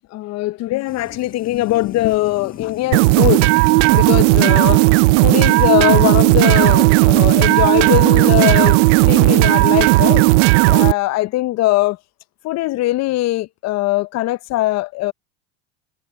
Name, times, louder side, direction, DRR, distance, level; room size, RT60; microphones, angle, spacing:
voice 1, 0.1-3.5 3.9-4.8 5.2-10.3 10.7-12.0 12.4-15.1, left 17 dB, 45° left, 0.7 m, -20 dB
sound 1, 0.9-10.3, left 6 dB, 25° left, 1.3 m, -39 dB
sound 2, 2.9-10.9, right 24 dB, 75° right, 0.6 m, -13 dB
supercardioid pair, 95°, 37 cm